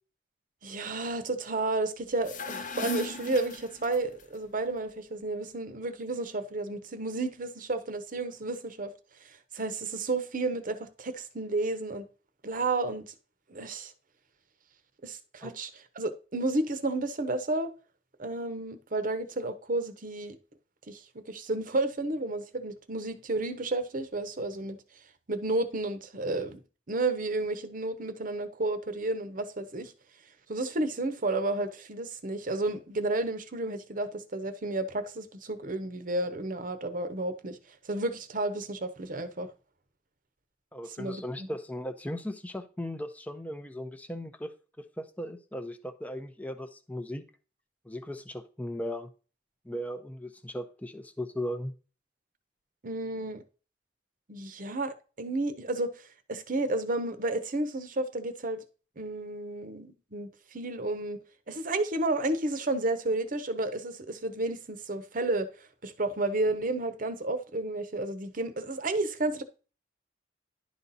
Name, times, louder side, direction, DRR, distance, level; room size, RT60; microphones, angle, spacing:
voice 1, 0.6-8.9 9.5-12.1 12.4-13.1 13.5-13.9 15.0-17.7 18.2-20.4 20.9-24.8 25.3-26.6 26.9-29.9 30.5-37.6 37.9-39.5 41.0-41.5 52.8-53.4 54.3-55.9 56.3-58.6 59.0-61.2 61.5-65.5 65.8-69.4, right 2 dB, 50° right, 0.9 m, -32 dB
sound 1, 2.1-4.2, left 3 dB, 45° left, 0.8 m, -37 dB
voice 2, 40.7-47.2 47.8-49.1 49.7-51.7, left 1 dB, 10° left, 0.6 m, -37 dB
11.0 x 4.1 x 4.1 m
head